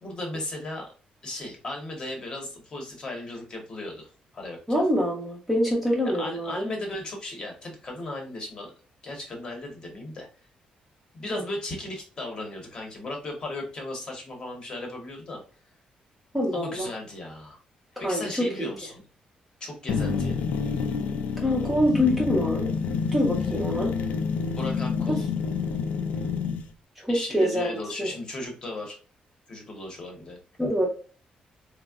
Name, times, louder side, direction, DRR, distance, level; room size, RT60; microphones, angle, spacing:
voice 1, 0.0-0.9 1.2-4.8 6.2-8.7 9.0-10.3 11.1-15.4 16.5-17.6 18.0-19.0 19.6-20.3 24.5-25.3 27.1-29.0 29.5-30.4, left 1 dB, 35° left, 1 dB, 0.8 m, -36 dB
voice 2, 4.7-6.7 11.3-11.5 16.3-16.9 18.0-18.9 21.4-22.7 23.1-23.9 25.0-25.2 27.0-28.1 30.6-30.9, equal, 5° right, -2 dB, 0.5 m, -25 dB
sound 1, 19.9-26.7, left 5 dB, 70° left, 0.3 m, -28 dB
3.5 x 2.0 x 2.3 m, 0.39 s
cardioid pair, 175°, 3 cm